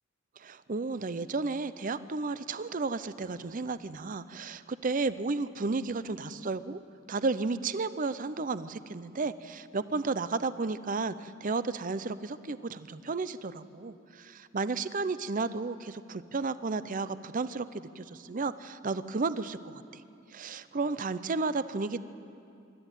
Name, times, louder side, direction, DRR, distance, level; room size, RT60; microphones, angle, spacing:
voice 1, 0.4-6.8 7.1-20.0 20.3-22.0, right 3 dB, 40° right, 14 dB, 0.6 m, -33 dB
25.0 x 13.0 x 9.1 m, 2.6 s
head